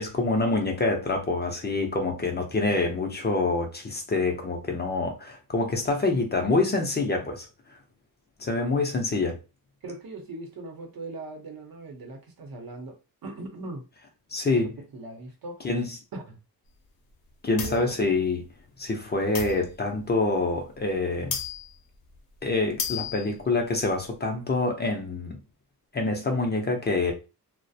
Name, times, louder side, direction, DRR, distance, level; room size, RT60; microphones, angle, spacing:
voice 1, 0.0-7.5 8.4-9.4 14.3-14.7 15.6-15.9 17.4-18.4 18.8-21.4 22.4-25.4 25.9-27.1, left 3 dB, 30° left, 0.4 m, -26 dB
voice 2, 9.8-13.8 14.6-15.7 16.1-16.4 17.6-17.9, right 2 dB, 70° right, 0.8 m, -40 dB
sound 1, 17.6-17.9 19.3-20.0 20.8-20.9 21.3-21.8 22.1-22.2 22.6-23.4, left 6 dB, 70° left, 0.6 m, -33 dB
2.3 x 2.0 x 2.6 m
wide cardioid pair, 155°, 37 cm